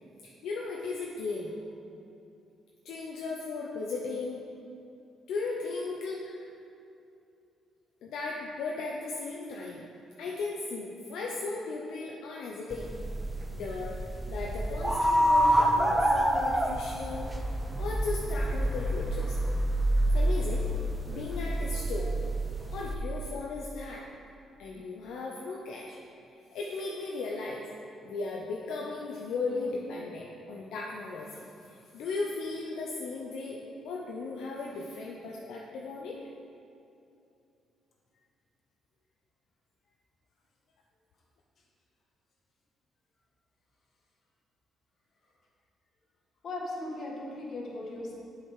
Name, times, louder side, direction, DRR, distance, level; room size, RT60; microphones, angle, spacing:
voice 1, 0.2-1.6 2.8-4.4 5.3-6.5 8.0-9.8 10.2-12.9 13.5-14.0 14.3-19.4 20.1-20.7 21.1-22.1 22.7-24.0 24.6-26.0 26.5-27.6 28.0-36.2, left 3 dB, 80° left, -3 dB, 0.7 m, -36 dB
sound 1, 12.7-22.9, right 1 dB, 10° right, 0.6 m, -28 dB
voice 2, 46.4-48.1, left 2 dB, 55° left, -2 dB, 1.6 m, -37 dB
7.5 x 4.9 x 4.8 m, 2.6 s
cardioid pair, 90°, 0 cm